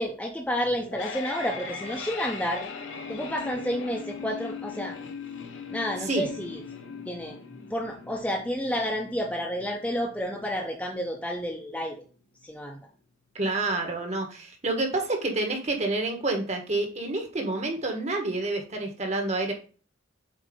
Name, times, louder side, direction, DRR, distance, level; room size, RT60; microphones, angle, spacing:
voice 1, 0.0-2.6 3.1-5.0 5.7-6.6 7.1-7.4 7.7-11.9 12.4-12.8, equal, 5° left, -1 dB, 0.7 m, -30 dB
sound 1, 0.6-11.6, left 5 dB, 85° left, 1.0 m, -40 dB
voice 2, 13.3-19.5, right 2 dB, 35° right, 3 dB, 1.4 m, -28 dB
7.5 x 2.8 x 5.2 m, 0.38 s
head